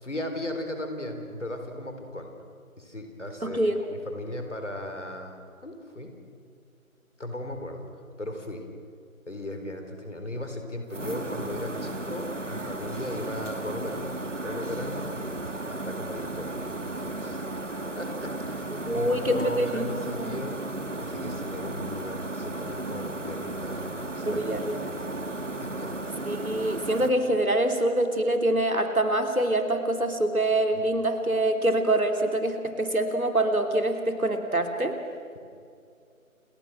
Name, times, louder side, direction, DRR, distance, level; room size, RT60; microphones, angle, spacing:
voice 1, 0.0-2.3 2.8-3.7 4.0-5.4 5.6-6.1 7.2-7.8 8.2-8.6 9.3-14.1 14.4-15.2 15.7-17.4 18.0-20.6 21.0-24.4 25.6-25.9, left 1 dB, 55° left, 5 dB, 4.2 m, -37 dB
voice 2, 3.4-3.8 18.7-20.5 24.3-24.8 26.3-34.9, right 1 dB, 75° right, 5 dB, 3.4 m, -25 dB
sound 1, 10.9-27.1, right 2 dB, 55° right, 2.0 m, -34 dB
29.5 x 21.5 x 6.3 m, 2.3 s
figure-of-eight pair, 165°, 43 cm